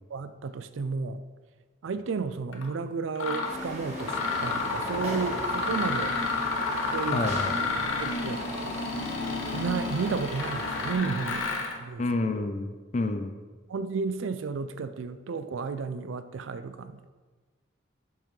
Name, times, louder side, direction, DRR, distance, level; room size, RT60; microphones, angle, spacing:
voice 1, 0.1-1.2 1.8-6.2 6.9-7.3 8.0-8.4 9.5-11.5 11.8-12.1 13.7-17.1, right 5 dB, 85° right, 12 dB, 0.4 m, -32 dB
Mechanisms, 2.5-2.7 3.2-3.5 4.0-11.8, left 3 dB, 90° left, 0.9 m, -30 dB
sound 1, 3.4-10.9, equal, 35° right, 1.3 m, -38 dB
voice 2, 7.1-7.6 12.0-13.3, left 2 dB, 40° left, 7 dB, 0.5 m, -29 dB
7.0 x 5.7 x 3.2 m, 1.4 s
head